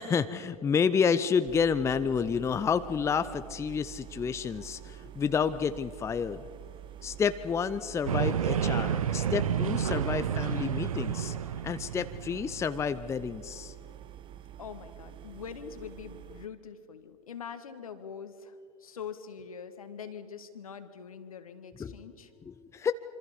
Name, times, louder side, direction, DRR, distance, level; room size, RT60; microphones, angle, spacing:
voice 1, 0.0-6.4 7.0-11.3 11.6-13.7 21.8-21.9 22.4-22.9, left 6 dB, 15° left, 12 dB, 0.7 m, -29 dB
sound 1, 1.5-16.5, right 11 dB, 25° right, 0.8 m, -47 dB
sound 2, 8.1-13.4, right 8 dB, 65° right, 1.0 m, -30 dB
voice 2, 14.6-22.3, left 7 dB, 70° left, 9 dB, 1.9 m, -43 dB
26.5 x 25.5 x 5.4 m, 2.2 s
figure-of-eight pair, 90°, 19 cm